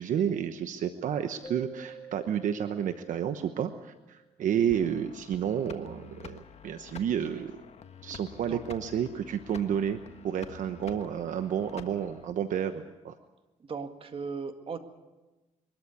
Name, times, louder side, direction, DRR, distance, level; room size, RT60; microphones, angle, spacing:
voice 1, 0.0-7.6 8.0-10.0 10.2-13.1, right 9 dB, 70° right, 9 dB, 1.0 m, -31 dB
Keyboard (musical), 1.4-4.2, right 4 dB, 30° left, 3.3 m, -48 dB
sound 1, 4.7-12.3, left 6 dB, 50° left, 1.4 m, -48 dB
voice 2, 13.7-14.8, right 5 dB, 45° right, 7 dB, 2.0 m, -37 dB
22.5 x 13.0 x 9.7 m, 1.1 s
cardioid pair, 95°, 14 cm